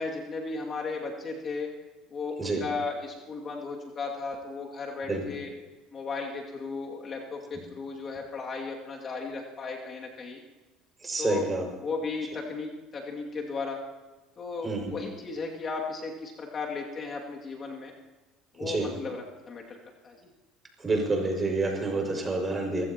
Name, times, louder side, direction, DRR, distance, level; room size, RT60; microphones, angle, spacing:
voice 1, 0.0-1.7 2.1-5.5 5.9-10.4 11.2-11.5 11.8-13.8 14.4-17.9 18.5-19.8 20.0-20.3, left 4 dB, 40° left, 0 dB, 2.4 m, -35 dB
voice 2, 11.0-11.7 14.6-14.9 18.6-19.0 20.8-22.8, right 3 dB, 25° right, 1 dB, 5.8 m, -28 dB
25.0 x 15.5 x 3.0 m, 1.1 s
hypercardioid pair, 70°, 0 cm